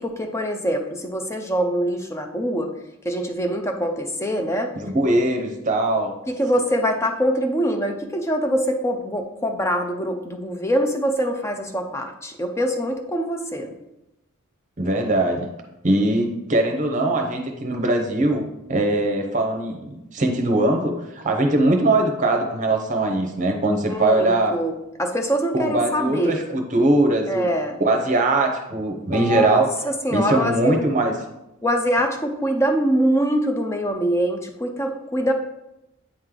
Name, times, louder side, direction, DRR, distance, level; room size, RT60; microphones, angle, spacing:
voice 1, 0.0-2.7 3.0-4.7 6.3-13.7 23.9-26.4 27.3-27.8 29.0-30.8 31.6-35.3, equal, 15° left, 4 dB, 0.5 m, -24 dB
voice 2, 4.7-6.1 14.8-15.5 15.8-18.4 18.7-24.6 25.5-27.5 27.8-29.7 30.1-31.1, right 2 dB, 35° right, 4 dB, 0.8 m, -21 dB
8.7 x 3.2 x 3.7 m, 0.91 s
head